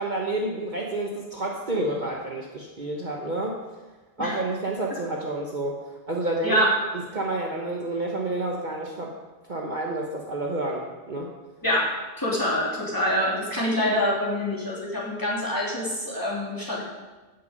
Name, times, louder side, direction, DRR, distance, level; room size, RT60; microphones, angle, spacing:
voice 1, 0.0-3.6 4.2-5.8 6.1-6.6 7.1-9.1 9.5-11.3, right 2 dB, 40° right, -1 dB, 1.3 m, -29 dB
voice 2, 6.4-6.8 11.6-16.9, equal, 15° left, -6 dB, 3.2 m, -25 dB
15.0 x 7.4 x 5.2 m, 1.2 s
omnidirectional pair, 1.3 m